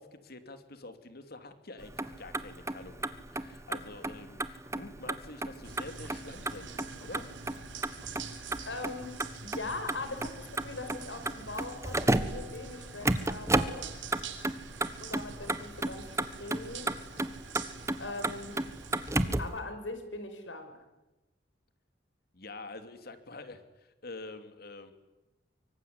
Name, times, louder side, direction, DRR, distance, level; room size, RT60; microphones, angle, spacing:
voice 1, 0.0-7.2 22.3-24.9, left 2 dB, 55° left, 9 dB, 2.9 m, -47 dB
Motor vehicle (road), 1.8-19.6, right 2 dB, 15° right, 1.4 m, -34 dB
sound 1, 5.6-19.4, right 5 dB, 90° right, 3.7 m, -46 dB
voice 2, 8.6-9.1 9.4-13.9 15.0-16.0 16.4-16.9 18.0-18.6 19.4-20.7, left 2 dB, 80° left, 8 dB, 5.7 m, -40 dB
25.0 x 24.5 x 9.6 m, 1.0 s
head